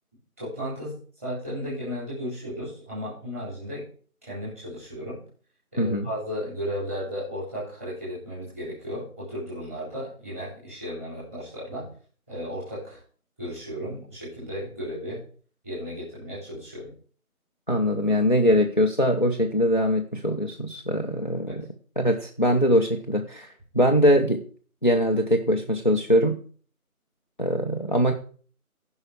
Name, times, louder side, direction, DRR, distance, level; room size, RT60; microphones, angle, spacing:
voice 1, 0.4-3.9 4.2-5.2 5.7-11.9 12.3-13.0 13.4-15.2 15.6-16.9 21.5-21.6, equal, 10° right, -9 dB, 3.4 m, -34 dB
voice 2, 5.8-6.1 17.7-21.6 22.0-24.4 24.8-26.4 27.4-28.1, equal, 35° left, 3 dB, 0.7 m, -22 dB
14.5 x 5.6 x 4.7 m, 0.43 s
figure-of-eight pair, 170°, 44 cm